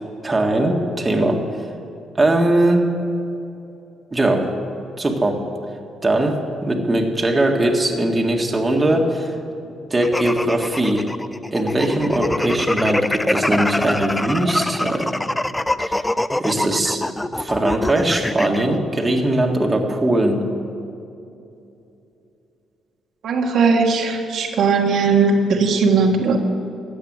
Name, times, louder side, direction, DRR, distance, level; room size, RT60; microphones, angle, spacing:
voice 1, 0.2-1.4 2.2-2.9 4.1-4.5 5.0-5.4 6.0-9.3 9.9-11.1 11.5-15.2 15.8-16.0 16.4-17.0 17.3-20.5, right 1 dB, 20° right, 1 dB, 1.7 m, -20 dB
sound 1, 10.0-18.6, left 1 dB, 10° left, 0.4 m, -24 dB
voice 2, 23.2-26.4, right 4 dB, 70° right, 2 dB, 1.5 m, -18 dB
13.5 x 8.8 x 7.9 m, 2.7 s
cardioid pair, 90°, 0 cm